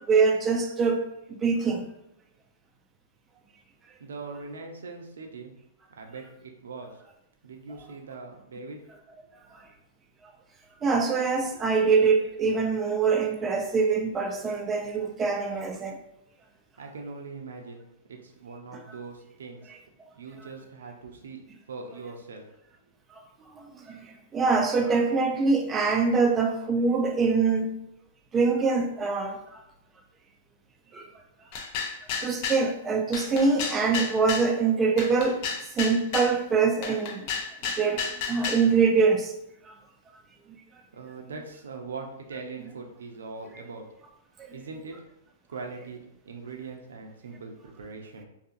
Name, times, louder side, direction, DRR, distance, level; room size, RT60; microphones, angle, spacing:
voice 1, 0.1-1.1 1.4-1.8 10.8-16.0 23.5-24.0 24.3-27.8 28.3-29.6 30.9-31.1 32.2-35.4 35.8-37.2 37.8-39.3 44.4-44.5, right 4 dB, 20° right, 0.4 m, -24 dB
voice 2, 4.0-5.5 5.9-7.0 7.4-8.8 16.8-17.8 18.1-19.7 20.2-21.4 21.7-22.5 40.9-43.9 44.5-45.0 45.5-48.2, right 4 dB, 75° right, 0.5 m, -41 dB
sound 1, 31.5-32.7 33.1-34.5 35.0-36.3 36.8-38.7, left 6 dB, 50° left, 0.5 m, -32 dB
2.6 x 2.4 x 2.6 m
hypercardioid pair, 120°, 0 cm